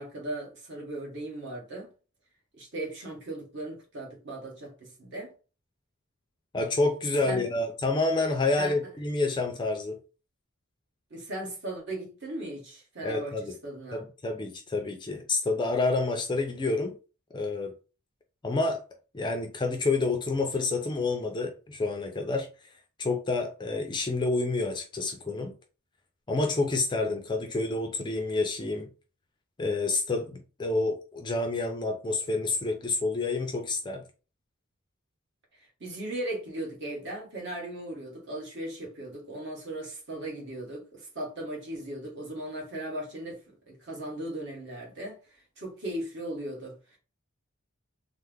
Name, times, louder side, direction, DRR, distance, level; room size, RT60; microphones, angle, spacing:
voice 1, 0.0-1.9 2.6-5.3 7.3-7.5 8.6-8.7 11.1-14.0 35.8-47.0, right 1 dB, 55° right, 1.2 m, -37 dB
voice 2, 6.5-10.0 13.0-13.5 13.9-17.0 17.3-17.7 18.4-18.8 19.1-22.5 23.0-25.5 26.3-28.9 29.6-34.0, left 3 dB, 20° left, 0.3 m, -28 dB
3.3 x 2.0 x 3.4 m
head